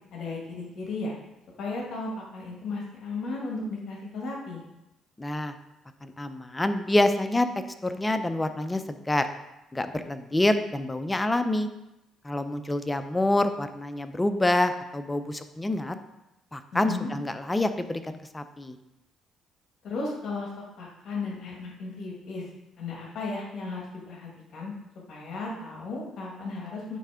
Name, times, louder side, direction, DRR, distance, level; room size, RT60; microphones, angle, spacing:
voice 1, 0.1-1.1 1.6-4.6 16.7-17.1 19.8-20.5 20.8-22.5 22.8-24.7 25.1-27.0, left 3 dB, 60° left, -3 dB, 1.9 m, -35 dB
voice 2, 5.2-5.5 6.0-7.5 7.8-9.3 9.7-11.7 12.2-16.0 16.5-18.7, left 1 dB, 15° left, 9 dB, 0.5 m, -27 dB
9.2 x 3.3 x 5.0 m, 0.93 s
cardioid pair, 100°, 0 cm